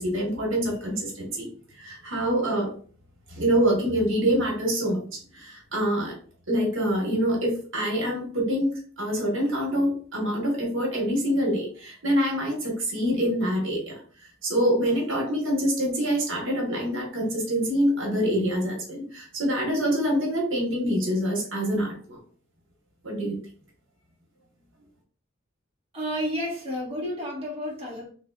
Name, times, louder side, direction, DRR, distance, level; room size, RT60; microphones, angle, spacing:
voice 1, 0.0-1.5 1.8-2.7 3.3-6.1 6.5-14.0 14.4-22.2 23.0-23.4, equal, 75° right, -1 dB, 1.3 m, -25 dB
voice 2, 25.9-28.1, equal, 30° right, -5 dB, 1.5 m, -31 dB
3.9 x 3.2 x 2.3 m, 0.43 s
head